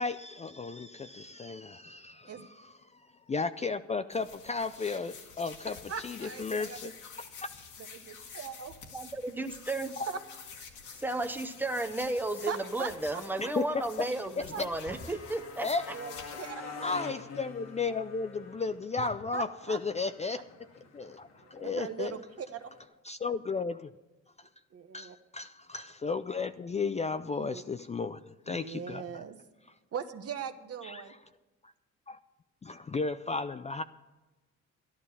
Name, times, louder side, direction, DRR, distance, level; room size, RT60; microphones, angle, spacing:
voice 1, 0.0-5.8 6.0-6.9 10.0-10.1 13.4-14.1 14.4-14.7 15.6-15.8 16.8-20.4 20.9-22.2 23.0-23.9 24.4-24.5 24.9-29.2 30.8-31.0 32.1-32.2 32.6-33.8, left 4 dB, 25° left, 11 dB, 0.4 m, -34 dB
sound 1, 4.1-16.5, left 5 dB, 75° left, 2.1 m, -48 dB
voice 2, 5.9-6.8 8.3-8.7 10.1-10.2 12.5-13.2 14.5-14.6 14.9-15.0 15.9-16.9 19.0-19.8 21.4-22.7 24.7-25.2 27.4-27.6 28.5-29.4 29.9-31.1, right 7 dB, 50° right, 8 dB, 1.2 m, -40 dB
voice 3, 8.9-9.9 11.0-15.7, right 2 dB, 5° right, 7 dB, 1.0 m, -33 dB
Motorcycle, 10.7-22.9, left 5 dB, 60° left, 1.9 m, -49 dB
12.0 x 11.0 x 5.6 m, 1.1 s
cardioid pair, 90°, 30 cm